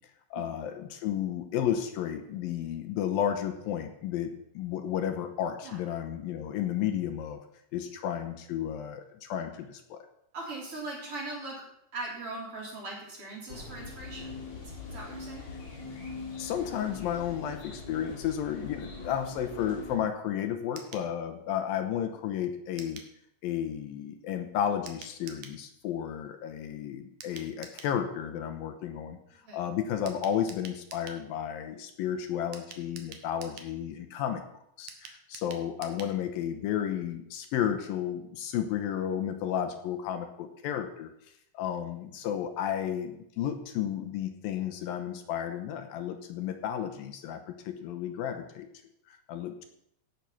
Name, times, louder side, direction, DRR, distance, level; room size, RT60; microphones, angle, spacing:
voice 1, 0.3-7.4 7.7-10.1 16.4-23.0 23.4-29.2 29.5-34.4 34.8-41.1 41.5-48.7 49.1-49.6, left 9 dB, 75° left, 7 dB, 2.6 m, -32 dB
voice 2, 10.3-11.6 11.9-14.3 14.6-15.4 29.4-29.6, right 2 dB, 35° right, -3 dB, 4.4 m, -40 dB
sound 1, 13.5-20.0, left 3 dB, 50° left, 3.9 m, -42 dB
sound 2, 20.8-21.1 22.8-23.1 24.9-25.6 27.2-28.0 30.1-31.2 32.5-33.7 34.9-36.2 36.5-36.6 36.8-36.9, right 7 dB, 65° right, 2.5 m, -47 dB
16.5 x 6.4 x 5.8 m, 0.76 s
omnidirectional pair, 4.3 m